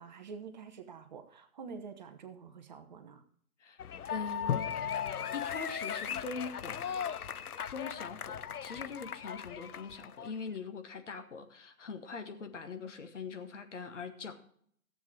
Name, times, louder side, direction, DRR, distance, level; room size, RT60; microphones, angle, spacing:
voice 1, 0.0-3.2, right 5 dB, 30° right, 1.0 m, -47 dB
sound 1, 3.8-10.4, left 8 dB, 85° left, 0.6 m, -37 dB
voice 2, 4.1-4.7 5.3-7.0 7.7-14.3, left 5 dB, 55° left, 1.8 m, -42 dB
15.0 x 7.7 x 4.8 m
figure-of-eight pair, 140°, 44 cm